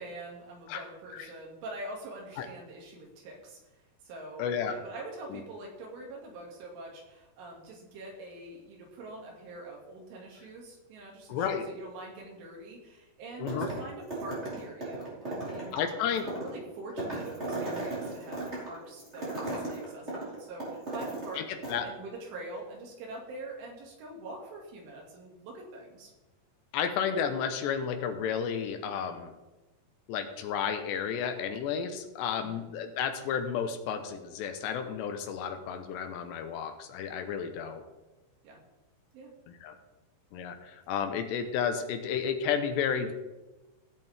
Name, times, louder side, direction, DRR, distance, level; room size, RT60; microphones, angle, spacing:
voice 1, 0.0-3.6 4.0-15.8 16.2-21.4 21.8-26.1 32.4-32.7 38.4-38.6 39.1-39.3, right 2 dB, 85° right, -1 dB, 4.8 m, -44 dB
voice 2, 4.4-4.7 5.3-5.4 11.3-11.7 13.4-13.7 15.7-16.3 21.3-21.9 26.7-29.3 30.1-37.8 39.5-39.7 40.3-43.1, left 7 dB, 75° left, 7 dB, 2.9 m, -32 dB
sound 1, 13.5-13.9 14.1-21.4 21.6-21.7, right 2 dB, 15° right, 4.4 m, -36 dB
16.5 x 8.3 x 3.6 m, 1.1 s
omnidirectional pair, 5.4 m